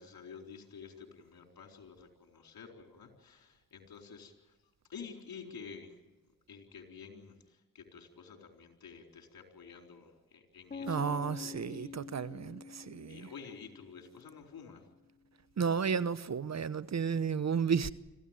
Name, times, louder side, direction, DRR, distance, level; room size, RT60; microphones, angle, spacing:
voice 1, 0.0-4.6 4.9-6.2 6.5-12.3 13.1-14.9 16.6-16.7, left 6 dB, 70° left, 4.2 m, -50 dB
sound 1, 10.7-14.6, left 5 dB, 25° left, 1.3 m, -46 dB
voice 2, 10.9-13.3 15.6-17.9, right 6 dB, 45° right, 1.0 m, -32 dB
25.5 x 15.0 x 9.0 m
supercardioid pair, 50°, 36 cm